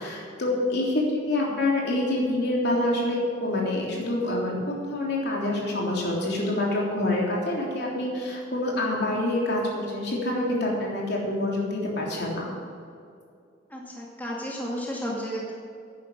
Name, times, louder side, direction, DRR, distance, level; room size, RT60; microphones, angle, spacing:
voice 1, 0.0-12.5, left 1 dB, 60° left, -3 dB, 3.5 m, -26 dB
voice 2, 13.7-15.5, equal, 10° left, -3 dB, 2.0 m, -33 dB
11.0 x 10.5 x 7.5 m, 2.4 s
head